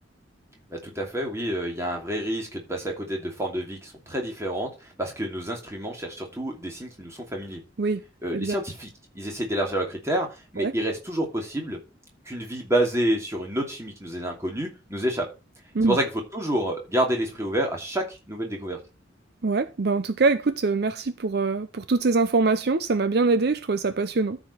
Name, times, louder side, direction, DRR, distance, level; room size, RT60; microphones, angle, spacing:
voice 1, 0.7-4.7 5.0-7.6 8.2-8.9 9.1-11.8 12.3-15.3 15.8-18.8, right 1 dB, 15° right, 2.7 m, -28 dB
voice 2, 19.4-24.4, right 3 dB, 60° right, 0.6 m, -23 dB
13.0 x 5.0 x 5.6 m
head